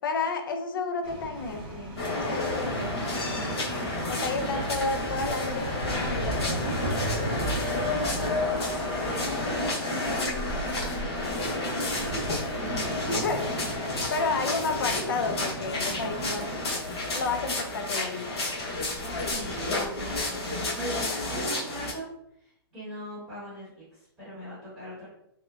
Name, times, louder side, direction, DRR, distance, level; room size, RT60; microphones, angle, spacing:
voice 1, 0.0-2.0 2.3-3.1 4.1-6.8 13.0-13.4 14.1-16.6 17.1-18.4 21.0-21.3, left 4 dB, 55° left, 5 dB, 0.4 m, -31 dB
sound 1, 1.0-20.3, right 1 dB, 25° right, 0.4 m, -38 dB
sound 2, 2.0-21.9, left 2 dB, 80° left, 1.0 m, -31 dB
voice 2, 2.9-3.6 4.5-4.6 7.6-8.4 8.8-11.4 11.7-13.2 13.6-13.7 19.2-20.4 20.7-22.1 22.4-25.1, right 1 dB, 5° right, -13 dB, 1.0 m, -40 dB
sound 3, 4.7-9.7, right 1 dB, 40° left, 0.9 m, -39 dB
2.9 x 2.1 x 2.3 m, 0.76 s
hypercardioid pair, 175°, 13 cm